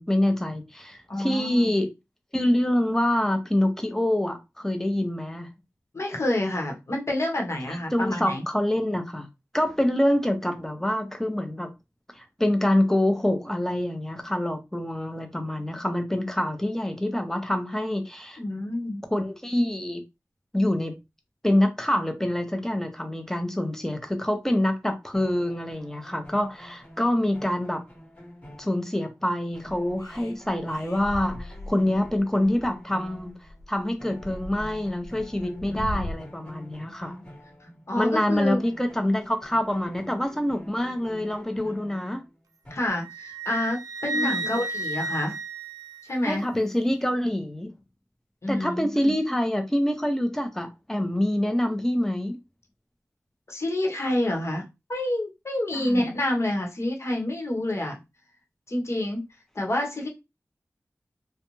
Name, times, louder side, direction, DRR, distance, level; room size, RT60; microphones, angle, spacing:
voice 1, 0.0-1.9 2.3-5.5 7.7-9.3 9.5-11.7 12.1-18.4 19.1-20.0 20.5-21.0 21.4-27.8 28.6-33.3 33.7-37.1 38.0-42.2 44.1-44.6 46.2-47.7 48.5-52.4 55.7-56.1, left 1 dB, 5° left, 0.7 m, -26 dB
voice 2, 1.1-1.8 5.9-8.4 18.4-19.1 35.4-35.9 37.0-37.2 37.6-38.6 41.7-41.9 42.7-45.4 46.0-46.4 48.4-49.1 53.5-58.0 58.7-59.2 59.5-60.1, left 1 dB, 50° left, 1.0 m, -28 dB
sound 1, 25.1-29.3 29.5-33.7 34.0-38.1 38.3-42.9, equal, 25° left, 1.2 m, -47 dB
sound 2, 29.6-36.2, left 1 dB, 85° left, 0.4 m, -39 dB
Wind instrument woodwind instrument, 43.0-46.5, right 2 dB, 85° right, 0.3 m, -33 dB
2.5 x 2.2 x 3.0 m
cardioid pair, 40°, 6 cm